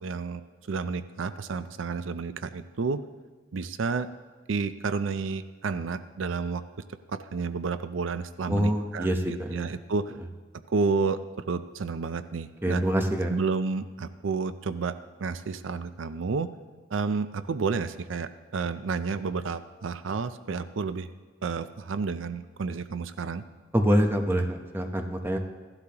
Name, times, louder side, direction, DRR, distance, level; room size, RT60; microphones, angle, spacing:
voice 1, 0.0-3.0 3.5-4.1 4.5-6.6 7.1-10.1 10.7-11.2 11.5-12.8 13.3-16.5 16.9-21.1 21.4-23.4, right 4 dB, 85° right, 12 dB, 0.5 m, -30 dB
voice 2, 8.5-9.7 12.6-13.3 23.7-25.4, equal, 10° right, 4 dB, 0.8 m, -25 dB
15.0 x 12.0 x 2.9 m, 1.5 s
head